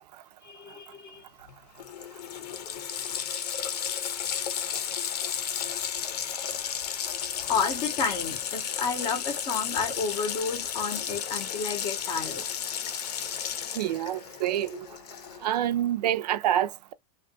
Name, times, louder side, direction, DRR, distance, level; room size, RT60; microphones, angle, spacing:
voice 1, 0.4-1.2 2.7-2.8 7.4-12.4, left 5 dB, 20° left, 0.5 m, -31 dB
Water tap faucet, 1.5-1.6 1.8-15.6, left 8 dB, 70° left, 0.7 m, -33 dB
voice 2, 13.8-14.9 15.4-16.9, right 11 dB, 75° right, 0.5 m, -27 dB
2.7 x 2.3 x 3.8 m
supercardioid pair, 170°, 21 cm